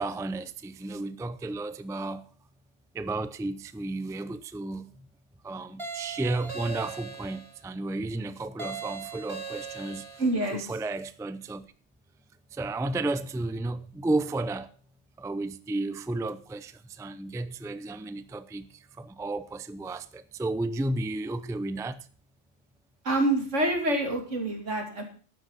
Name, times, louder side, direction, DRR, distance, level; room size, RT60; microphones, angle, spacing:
voice 1, 0.0-2.2 2.9-5.1 5.4-10.1 10.5-11.7 12.5-14.7 15.2-22.1, right 2 dB, 5° right, 0.4 m, -33 dB
sound 1, 5.8-7.6 8.6-10.4, right 5 dB, 25° right, 2.6 m, -39 dB
voice 2, 10.2-10.6 23.0-25.0, right 1 dB, 85° right, 3.1 m, -26 dB
12.5 x 9.3 x 5.7 m
omnidirectional pair, 1.2 m